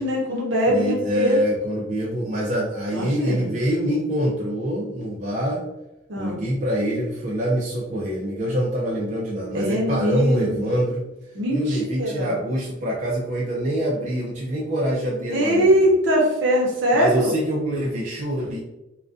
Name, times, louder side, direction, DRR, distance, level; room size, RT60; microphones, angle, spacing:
voice 1, 0.0-1.4 2.9-3.5 6.1-6.4 9.5-10.7 11.3-12.3 15.3-17.3, equal, 70° right, -2 dB, 0.7 m, -22 dB
voice 2, 0.7-5.6 6.2-11.0 11.5-15.7 16.9-18.6, equal, 40° right, -4 dB, 0.4 m, -25 dB
2.3 x 2.1 x 2.4 m, 0.95 s
head